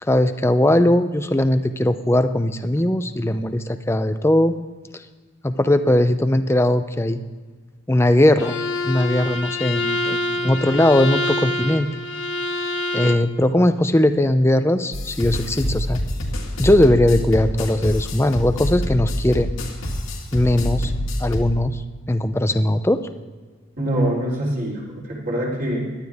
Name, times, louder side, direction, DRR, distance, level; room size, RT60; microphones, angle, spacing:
voice 1, 0.0-4.5 4.9-5.0 5.4-7.2 7.9-11.9 12.9-16.0 16.6-19.5 20.3-20.9 21.2-21.8 22.1-23.0, left 1 dB, 10° left, 10 dB, 0.5 m, -19 dB
Bowed string instrument, 8.4-13.3, left 2 dB, 60° left, 1.0 m, -26 dB
sound 1, 14.9-21.5, equal, 85° left, 2.2 m, -26 dB
voice 2, 23.8-25.9, right 1 dB, 40° right, -4 dB, 3.7 m, -24 dB
17.0 x 11.5 x 3.5 m, 1.4 s
head